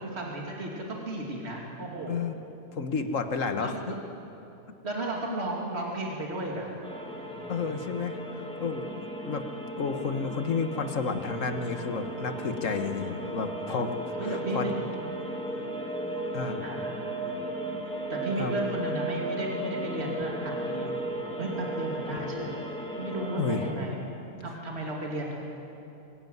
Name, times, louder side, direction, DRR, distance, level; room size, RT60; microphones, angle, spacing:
voice 1, 0.0-2.2 3.6-4.0 4.8-6.7 7.3-7.8 13.7-13.8 14.2-14.9 15.3-15.4 16.6-17.0 18.1-22.7 23.0-24.0 24.4-25.4, right 1 dB, 50° right, -2 dB, 3.0 m, -34 dB
voice 2, 2.7-4.0 7.5-9.5 9.8-13.9 14.2-14.7 16.3-16.6 18.4-18.6 23.4-23.9, left 5 dB, 65° left, 7 dB, 1.7 m, -31 dB
sound 1, 6.8-23.7, right 1 dB, 5° left, 2.2 m, -35 dB
26.0 x 16.5 x 9.4 m, 2.9 s
omnidirectional pair, 1.5 m